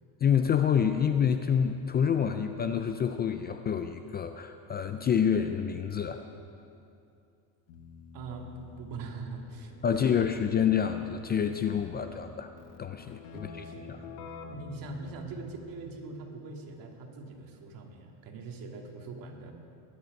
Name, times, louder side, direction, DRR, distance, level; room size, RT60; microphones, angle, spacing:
voice 1, 0.2-6.2 9.8-12.5 12.8-14.0, left 8 dB, 25° left, 8 dB, 0.4 m, -27 dB
Keyboard (musical), 7.7-16.1, left 5 dB, 60° left, 1.3 m, -48 dB
voice 2, 8.1-10.2 13.3-14.2 14.5-19.5, right 3 dB, 45° right, 1 dB, 2.3 m, -42 dB
21.5 x 9.6 x 5.3 m, 2.6 s
supercardioid pair, 125°, 46 cm